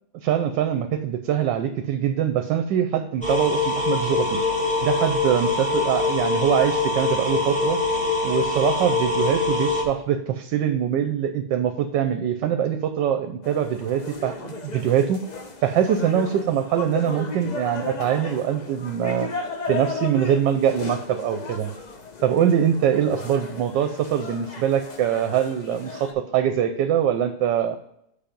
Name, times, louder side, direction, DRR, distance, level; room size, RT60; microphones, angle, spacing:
voice 1, 0.2-4.4 4.8-7.8 8.2-15.2 15.6-19.3 19.7-21.7 22.2-27.8, right 9 dB, 80° right, 8 dB, 1.3 m, -23 dB
sound 1, 3.2-9.8, left 3 dB, 5° left, 1.2 m, -24 dB
sound 2, 13.4-26.1, left 4 dB, 90° left, 0.3 m, -35 dB
6.9 x 5.3 x 5.2 m, 0.75 s
omnidirectional pair, 2.0 m